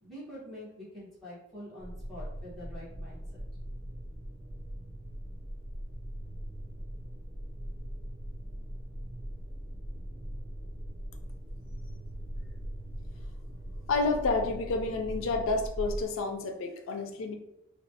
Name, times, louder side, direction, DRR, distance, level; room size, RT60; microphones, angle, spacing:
voice 1, 0.0-3.2, equal, ahead, -11 dB, 1.2 m, -45 dB
sound 1, 1.8-16.0, equal, 25° right, 0.4 m, -40 dB
voice 2, 13.9-17.4, left 3 dB, 90° left, 4 dB, 0.4 m, -30 dB
3.1 x 2.3 x 2.7 m, 0.85 s
head